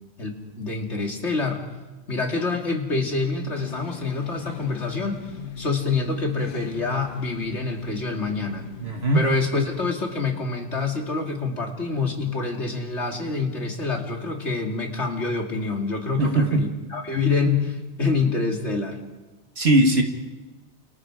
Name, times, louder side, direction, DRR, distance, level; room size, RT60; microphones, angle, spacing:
voice 1, 0.2-1.6 2.1-5.3 5.6-8.7 9.1-19.0, left 4 dB, 80° left, 2 dB, 3.3 m, -26 dB
sound 1, 3.5-9.9, left 7 dB, 50° left, 1.0 m, -39 dB
voice 2, 8.8-9.2 16.2-16.7 19.6-20.0, right 1 dB, 65° right, 3 dB, 2.0 m, -19 dB
29.5 x 28.0 x 4.9 m, 1.2 s
omnidirectional pair, 1.2 m